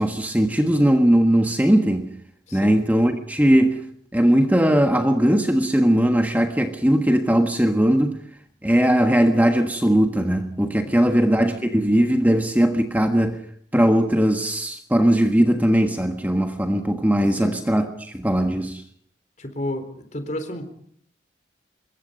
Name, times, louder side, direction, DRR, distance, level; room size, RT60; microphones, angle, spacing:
voice 1, 0.0-2.1 2.5-3.8 4.1-8.2 8.6-13.4 13.7-18.8, equal, 10° right, 1.4 m, -19 dB
voice 2, 2.5-2.8 10.9-11.3 17.4-17.6 19.4-20.7, left 1 dB, 40° left, 4.0 m, -32 dB
26.0 x 22.5 x 5.4 m
head